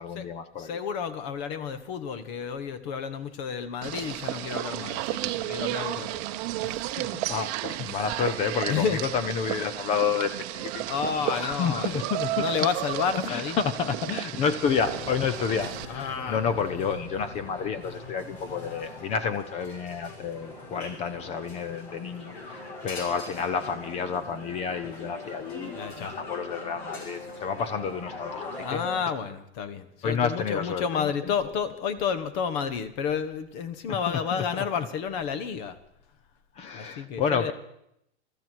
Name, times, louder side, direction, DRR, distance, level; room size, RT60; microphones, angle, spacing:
voice 1, 0.0-0.7 7.3-10.9 11.3-12.5 13.2-28.8 30.0-31.3 34.1-34.7 36.5-37.5, left 6 dB, 20° left, 12 dB, 0.6 m, -30 dB
voice 2, 0.6-7.2 8.7-9.0 10.9-13.6 15.9-16.4 24.8-24.9 25.7-26.2 28.6-35.8 36.7-37.5, left 7 dB, 40° left, 12 dB, 1.5 m, -31 dB
sound 1, 3.8-15.9, right 15 dB, 35° right, 0.9 m, -33 dB
sound 2, 14.6-29.1, left 2 dB, 65° left, 5.8 m, -41 dB
22.0 x 14.0 x 4.6 m, 0.78 s
hypercardioid pair, 145°, 34 cm